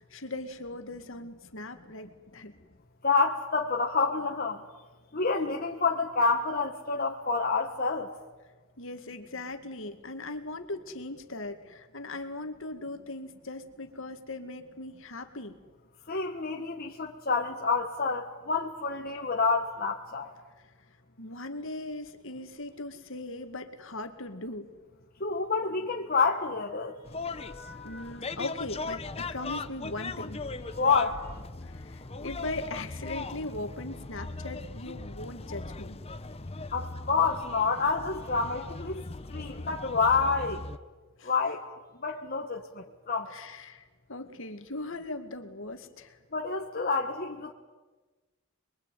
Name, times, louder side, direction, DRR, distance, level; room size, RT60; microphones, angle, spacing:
voice 1, 0.0-2.5 8.8-15.6 21.2-24.7 27.8-30.4 31.6-36.0 41.2-41.3 43.3-46.2, left 2 dB, 65° left, 7 dB, 2.2 m, -39 dB
voice 2, 3.0-4.6 5.1-8.1 16.1-20.3 25.2-27.0 27.3-28.0 30.7-31.3 36.7-39.0 39.3-40.6 41.2-41.6 42.0-43.3 46.3-47.5, left 4 dB, 45° left, 1 dB, 1.6 m, -28 dB
sound 1, 27.1-40.8, left 3 dB, 30° left, 0.9 m, -39 dB
26.0 x 22.5 x 9.3 m, 1.2 s
head